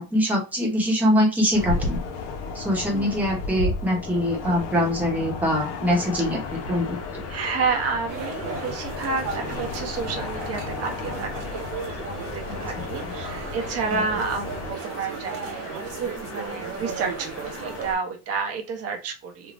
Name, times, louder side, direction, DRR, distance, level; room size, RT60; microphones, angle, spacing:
voice 1, 0.0-2.0 2.5-6.4 6.7-7.2 12.4-12.6 13.0-13.1 13.9-14.0, equal, 5° right, -3 dB, 0.8 m, -23 dB
sound 1, 1.5-14.7, left 3 dB, 85° left, 0.6 m, -34 dB
voice 2, 2.9-3.2 7.3-19.5, right 4 dB, 35° right, 4 dB, 0.6 m, -30 dB
sound 2, 5.8-18.0, left 4 dB, 35° left, 0.5 m, -40 dB
sound 3, 8.1-17.9, right 6 dB, 85° right, 0.8 m, -36 dB
2.5 x 2.0 x 3.2 m, 0.30 s
cardioid pair, 150°, 43 cm